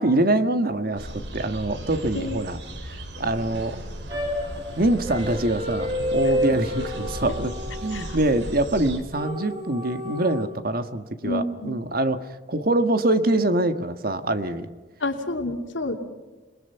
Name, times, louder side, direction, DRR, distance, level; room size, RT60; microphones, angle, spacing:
voice 1, 0.0-2.6 2.8-3.8 4.8-7.5 7.8-14.7, right 1 dB, 50° right, 9 dB, 1.6 m, -24 dB
sound 1, 1.0-9.0, right 1 dB, 65° right, 3.6 m, -36 dB
sound 2, 4.1-8.4 9.1-10.4, equal, 25° right, 6.5 m, -29 dB
voice 2, 11.2-11.8 15.0-15.9, left 2 dB, 90° left, 5 dB, 2.8 m, -29 dB
27.5 x 21.0 x 5.7 m, 1.3 s
head